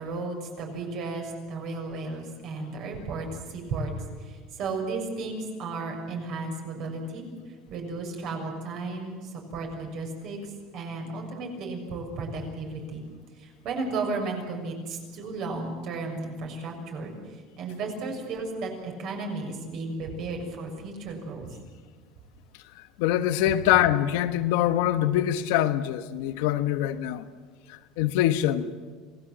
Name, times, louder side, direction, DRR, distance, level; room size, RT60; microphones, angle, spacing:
voice 1, 0.0-3.9 4.2-7.2 7.7-10.4 10.7-13.0 13.4-17.1 17.6-21.5, right 3 dB, 50° right, 6.1 m, -34 dB
voice 2, 23.0-27.2 27.7-28.7, left 12 dB, 85° left, 1.3 m, -24 dB
27.5 x 18.5 x 7.5 m
cardioid pair, 150°, 0 cm